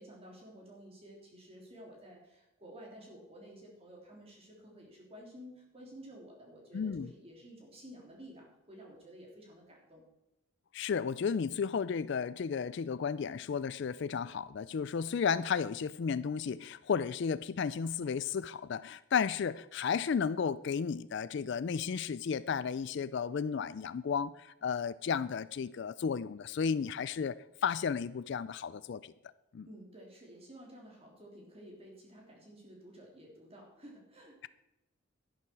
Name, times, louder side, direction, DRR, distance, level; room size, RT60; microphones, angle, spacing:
voice 1, 0.0-10.0 29.6-34.4, equal, 30° right, 3.4 m, -52 dB
voice 2, 6.7-7.1 10.7-29.1 29.5-29.7, left 6 dB, 55° left, 0.3 m, -33 dB
11.5 x 11.0 x 4.7 m
head